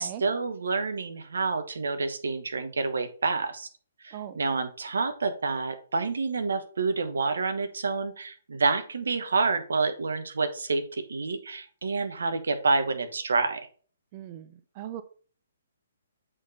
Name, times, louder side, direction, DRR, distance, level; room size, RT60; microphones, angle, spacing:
voice 1, 0.0-3.7 4.0-13.7, right 4 dB, 65° right, 9 dB, 1.1 m, -28 dB
voice 2, 14.1-15.0, right 11 dB, 35° right, 11 dB, 0.6 m, -39 dB
7.8 x 4.2 x 4.1 m, 0.42 s
figure-of-eight pair, 130°, 0 cm